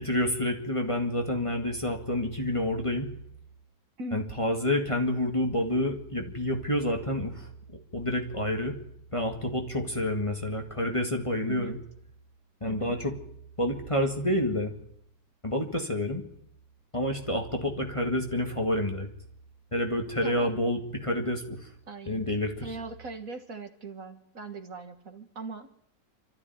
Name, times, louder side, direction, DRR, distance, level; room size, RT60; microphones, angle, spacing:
voice 1, 0.0-3.1 4.1-7.5 7.9-8.8 9.1-11.8 12.6-13.1 13.6-14.7 15.4-16.2 16.9-19.1 19.7-21.6 22.1-22.6, left 1 dB, 20° left, 2 dB, 2.1 m, -28 dB
voice 2, 4.0-4.3 11.5-11.8 12.7-13.0 20.2-20.5 21.9-22.3 22.6-25.7, right 3 dB, 55° right, 7 dB, 1.9 m, -40 dB
27.0 x 13.5 x 9.5 m, 0.74 s
omnidirectional pair, 1.9 m